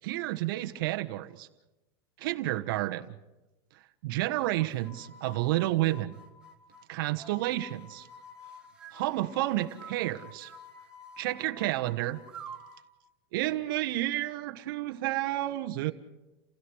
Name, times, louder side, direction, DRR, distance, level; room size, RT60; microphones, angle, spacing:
voice 1, 0.0-1.5 2.2-3.1 4.0-6.1 6.9-8.1 8.9-10.5 11.2-12.2 13.3-15.9, right 16 dB, 60° right, 6 dB, 1.3 m, -30 dB
sound 1, 4.7-12.9, right 1 dB, 5° right, 2.7 m, -49 dB
29.5 x 16.5 x 6.4 m, 1.0 s
supercardioid pair, 155°, 13 cm